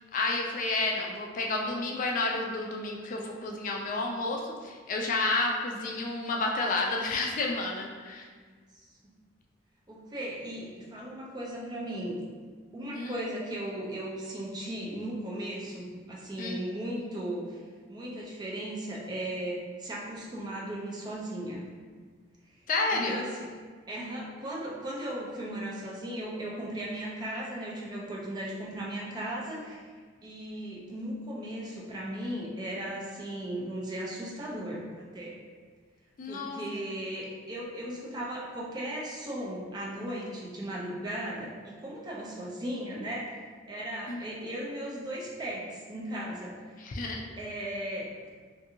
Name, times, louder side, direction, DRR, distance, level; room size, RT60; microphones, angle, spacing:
voice 1, 0.1-8.3 12.9-13.2 16.4-16.6 22.7-23.2 36.2-36.6 44.1-44.2 46.8-47.2, left 3 dB, 45° left, 0 dB, 0.3 m, -30 dB
voice 2, 8.4-8.9 9.9-12.1 12.7-17.6 17.9-21.6 22.9-23.5 23.9-29.9 30.2-35.4 36.2-43.4 43.7-46.8 47.4-48.3, right 1 dB, 20° right, -4 dB, 0.5 m, -37 dB
2.6 x 2.5 x 2.7 m, 1.5 s
head